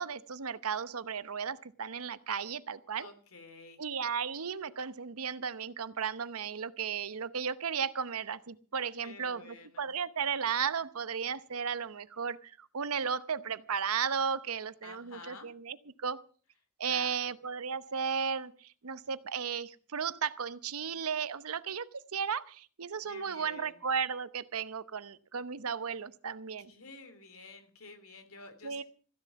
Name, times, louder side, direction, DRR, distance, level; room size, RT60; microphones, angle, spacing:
voice 1, 0.0-3.1 3.8-16.2 16.8-21.8 22.1-26.7 28.6-28.8, right 6 dB, 80° right, 15 dB, 0.9 m, -35 dB
voice 2, 3.0-3.8 9.0-9.9 14.8-15.5 16.8-17.3 23.0-23.8 26.7-28.8, left 3 dB, 70° left, 8 dB, 3.1 m, -50 dB
15.5 x 10.5 x 6.9 m, 0.42 s
head